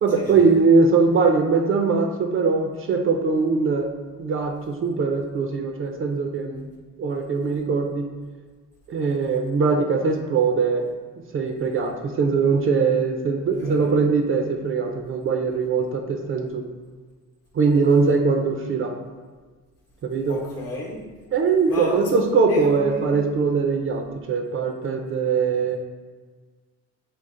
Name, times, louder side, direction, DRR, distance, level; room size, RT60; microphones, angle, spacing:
voice 1, 0.0-3.9 4.2-6.7 7.0-8.1 8.9-10.8 11.3-16.6 17.5-18.9 20.0-20.4 21.3-25.8, right 4 dB, 45° right, 3 dB, 0.4 m, -21 dB
voice 2, 13.6-13.9 20.3-21.1 21.7-22.1 22.5-23.2, left 1 dB, 55° left, -2 dB, 0.9 m, -32 dB
3.7 x 2.4 x 3.7 m, 1.4 s
cardioid pair, 90°, 30 cm